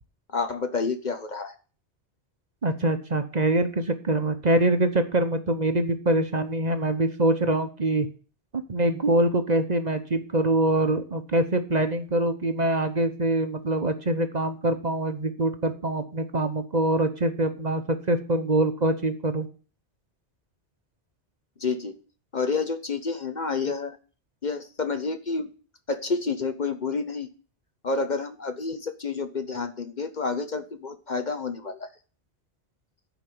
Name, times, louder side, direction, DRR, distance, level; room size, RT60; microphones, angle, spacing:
voice 1, 0.3-1.6 21.6-22.0 22.3-24.0 24.4-25.5 25.9-27.3 27.8-31.9, left 4 dB, 45° left, 8 dB, 1.1 m, -29 dB
voice 2, 2.6-8.1 8.5-19.5, right 1 dB, 40° right, 8 dB, 1.1 m, -24 dB
10.0 x 5.2 x 7.7 m, 0.37 s
omnidirectional pair, 1.2 m